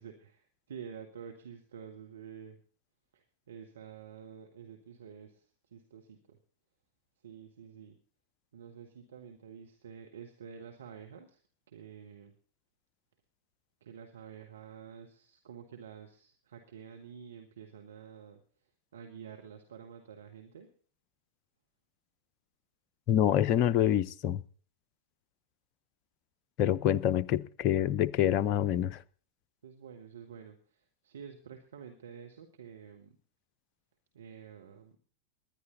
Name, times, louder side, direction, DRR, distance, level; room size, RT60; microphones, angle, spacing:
voice 1, 0.0-2.6 3.1-5.4 5.7-6.4 7.2-8.0 8.5-11.4 11.7-12.3 13.8-18.4 18.9-20.7 29.6-33.1 34.1-34.9, right 7 dB, 65° right, 1.8 m, -49 dB
voice 2, 23.1-24.4 26.6-29.0, left 11 dB, 40° left, 0.7 m, -26 dB
20.0 x 11.0 x 4.0 m
figure-of-eight pair, 90°, 0 cm